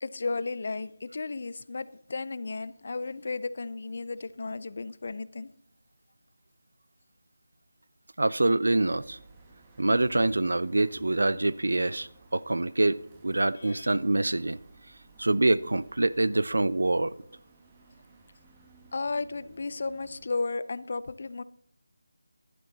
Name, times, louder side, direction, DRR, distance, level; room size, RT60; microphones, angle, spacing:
voice 1, 0.0-5.5 13.6-14.0 18.9-21.4, left 3 dB, 50° left, 0.5 m, -34 dB
voice 2, 8.2-9.2 9.8-14.6 15.2-17.1, right 2 dB, 75° right, 0.5 m, -25 dB
sound 1, 8.7-20.3, right 3 dB, 20° right, 1.3 m, -55 dB
11.5 x 10.0 x 4.0 m
figure-of-eight pair, 165°, 0 cm